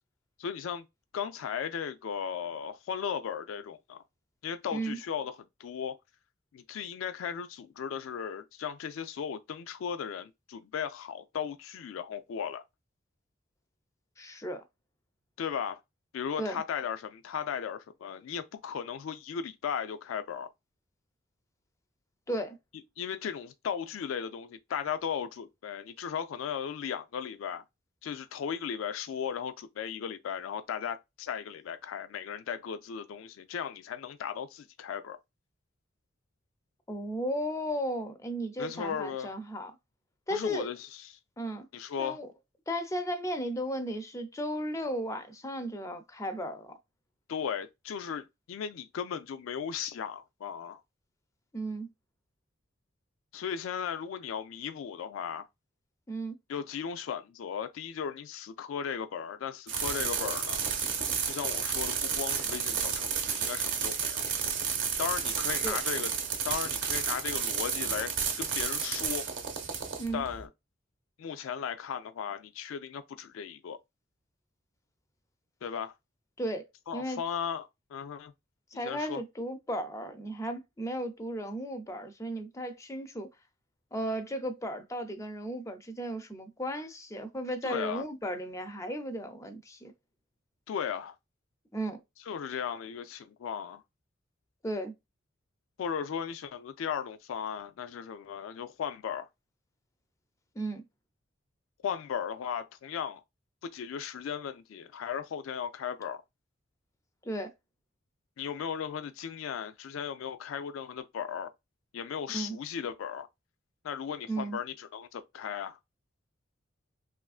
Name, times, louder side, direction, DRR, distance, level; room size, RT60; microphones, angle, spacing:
voice 1, 0.4-0.9 1.1-4.0 4.4-5.3 5.6-6.0 6.5-12.6 15.4-15.8 16.1-20.5 23.0-27.6 28.0-35.2 38.6-39.3 40.3-41.2 41.7-42.2 47.3-50.8 53.3-55.5 56.5-60.6 61.2-64.2 65.0-66.1 66.4-69.3 70.1-70.5 71.2-73.8 75.6-75.9 76.9-78.3 78.8-79.2 87.6-88.1 90.7-91.2 92.3-93.8 95.8-99.3 101.8-103.2 103.6-106.2 108.4-111.5 111.9-113.3 113.8-115.8, left 7 dB, 85° left, 0.3 m, -36 dB
voice 2, 14.2-14.6 16.4-16.6 22.3-22.6 36.9-39.7 40.3-40.7 41.4-41.7 42.0-42.3 42.7-46.7 51.5-51.9 56.1-56.4 65.6-65.8 70.0-70.2 76.4-76.7 76.9-77.2 78.7-83.3 83.9-89.9 91.7-92.0 94.6-94.9 100.6-100.8 107.2-107.5 112.3-112.6 114.3-114.6, right 1 dB, 15° left, 0.4 m, -35 dB
sound 1, 59.7-70.4, right 7 dB, 70° right, 0.7 m, -31 dB
3.0 x 2.4 x 2.3 m
head